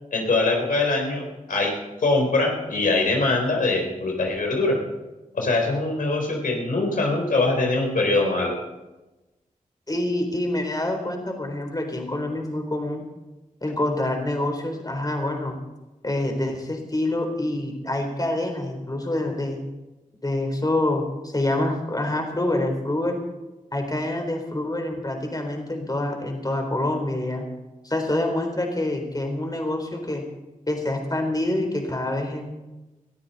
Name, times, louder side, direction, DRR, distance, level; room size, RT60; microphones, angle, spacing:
voice 1, 0.1-1.7 2.0-4.7 5.3-8.5, left 2 dB, 80° left, 1 dB, 3.6 m, -23 dB
voice 2, 9.9-13.0 13.6-15.6 16.0-19.6 20.2-23.2 23.7-27.4 27.8-30.2 30.7-32.5, left 1 dB, 25° left, 3 dB, 3.9 m, -26 dB
21.0 x 13.5 x 4.2 m, 1.1 s
cardioid pair, 50°, 14 cm